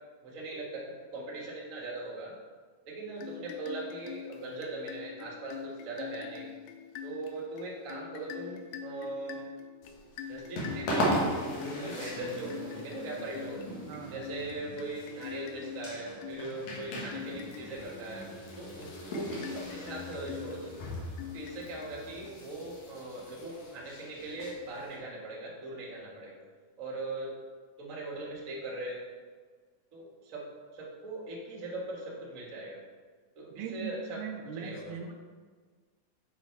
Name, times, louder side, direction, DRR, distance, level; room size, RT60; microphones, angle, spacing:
voice 1, 0.2-2.3 2.9-6.5 7.0-9.5 10.3-13.6 14.1-18.2 18.6-20.8 21.3-26.4 26.8-27.3 27.8-29.0 29.9-30.4 30.7-32.8 33.4-34.2 34.5-34.9, right 2 dB, 40° right, -4 dB, 1.2 m, -40 dB
sound 1, 3.2-22.4, left 9 dB, 80° left, 2.0 m, -45 dB
sound 2, 9.8-25.0, equal, 60° left, 2.4 m, -38 dB
voice 2, 13.9-14.2 33.6-35.1, right 7 dB, 80° right, 2 dB, 2.1 m, -40 dB
7.2 x 4.8 x 4.5 m, 1.6 s
omnidirectional pair, 3.8 m